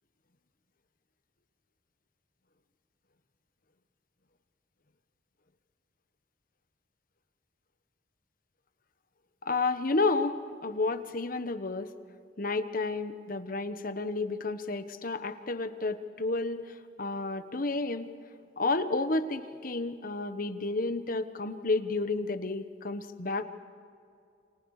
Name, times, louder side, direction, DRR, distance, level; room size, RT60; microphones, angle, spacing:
voice 1, 9.5-10.4 10.6-11.9 12.4-16.6 17.0-18.1 18.6-23.4, left 3 dB, 50° left, 9 dB, 1.2 m, -31 dB
29.5 x 25.0 x 4.9 m, 2.4 s
head